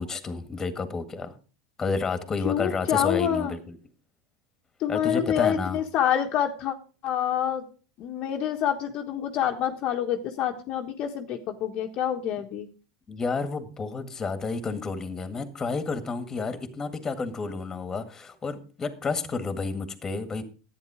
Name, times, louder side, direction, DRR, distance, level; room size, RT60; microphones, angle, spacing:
voice 1, 0.0-1.4 1.8-3.8 4.9-5.8 13.1-20.4, left 4 dB, 20° left, 10 dB, 1.8 m, -31 dB
voice 2, 2.4-3.6 4.8-6.7 7.0-7.6 8.0-12.7, left 10 dB, 50° left, 3 dB, 1.3 m, -27 dB
11.0 x 9.3 x 4.9 m, 0.36 s
hypercardioid pair, 95°, 2 cm